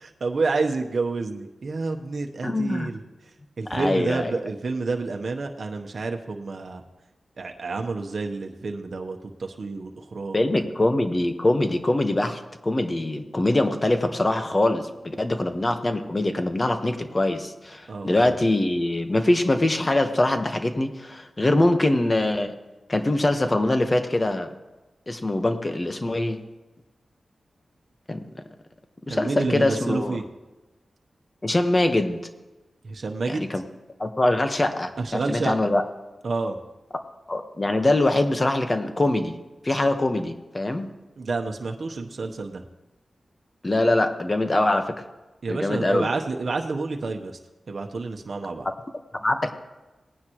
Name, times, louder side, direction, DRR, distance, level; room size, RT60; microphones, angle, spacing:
voice 1, 0.0-3.0 3.6-6.8 7.4-10.6 17.9-18.2 29.1-30.2 32.8-33.5 35.0-35.5 36.2-36.6 41.2-42.6 45.4-47.4 47.7-48.6, right 3 dB, 65° right, 3 dB, 1.0 m, -29 dB
voice 2, 2.4-2.9 3.7-4.3 10.3-22.5 22.9-24.5 25.1-26.4 28.1-28.4 29.1-30.2 31.4-32.2 33.3-33.6 34.0-35.8 37.3-39.4 39.6-40.9 43.6-45.0 45.5-46.1 49.2-49.5, left 1 dB, 35° left, 7 dB, 1.2 m, -23 dB
18.5 x 9.7 x 3.1 m, 1.1 s
cardioid pair, 45°, 0 cm